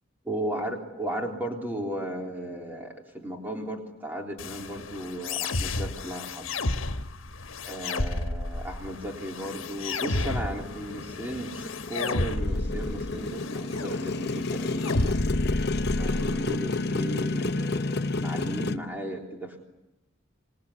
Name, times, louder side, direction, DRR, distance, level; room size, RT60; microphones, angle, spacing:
voice 1, 0.3-6.5 7.7-15.2 16.0-19.6, right 1 dB, 10° right, 1 dB, 3.6 m, -35 dB
sound 1, 4.4-16.4, left 2 dB, 85° left, 1.3 m, -32 dB
Motorcycle, 9.4-18.8, left 3 dB, 55° left, 0.9 m, -31 dB
26.5 x 20.5 x 9.7 m, 0.97 s
head